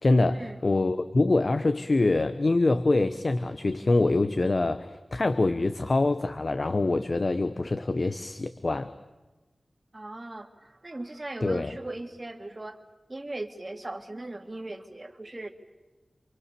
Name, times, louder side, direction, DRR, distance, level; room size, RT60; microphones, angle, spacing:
voice 1, 0.0-8.9 11.4-11.7, left 2 dB, 55° left, 11 dB, 1.0 m, -25 dB
voice 2, 9.9-12.8 13.1-15.5, right 2 dB, 35° right, 5 dB, 2.4 m, -38 dB
28.5 x 24.0 x 6.9 m, 1.1 s
wide cardioid pair, 50°, 0 cm